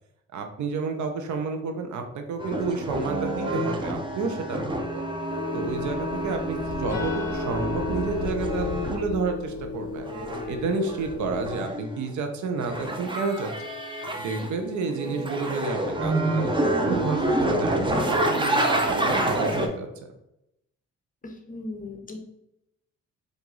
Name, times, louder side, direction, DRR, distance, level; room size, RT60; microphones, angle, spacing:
voice 1, 0.3-5.0 5.5-10.1 10.5-13.5 14.2-16.5 16.9-19.9, right 4 dB, 75° right, 5 dB, 0.8 m, -30 dB
sound 1, 2.4-9.0 10.0-12.0 12.6-14.6 14.9-19.7, right 1 dB, 15° right, 0.7 m, -28 dB
sound 2, 5.3-11.6, left 4 dB, 60° left, 0.6 m, -33 dB
voice 2, 21.2-22.2, left 2 dB, 25° left, 3 dB, 0.8 m, -38 dB
4.6 x 2.6 x 3.9 m, 0.84 s
cardioid pair, 90°, 30 cm